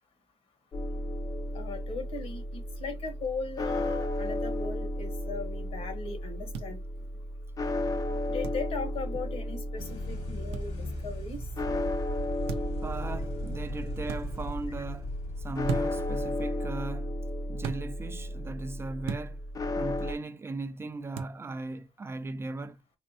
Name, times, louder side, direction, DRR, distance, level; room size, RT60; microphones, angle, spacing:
sound 1, 0.7-20.1, left 1 dB, 35° left, 0.4 m, -34 dB
voice 1, 1.5-6.8 8.3-11.4, left 4 dB, 75° left, 1.1 m, -38 dB
sound 2, 6.5-6.7 8.4-8.6 10.5-10.7 12.5-12.8 14.0-14.2 15.6-16.1 17.6-17.8 19.0-19.3 21.1-21.4, right 7 dB, 80° right, 0.5 m, -36 dB
sound 3, 9.8-16.3, left 1 dB, 90° left, 1.7 m, -40 dB
voice 2, 12.8-15.1 15.4-17.2 17.5-19.4 19.7-22.8, right 3 dB, 25° right, 0.3 m, -38 dB
3.5 x 2.2 x 2.7 m
cardioid pair, 80°, 10 cm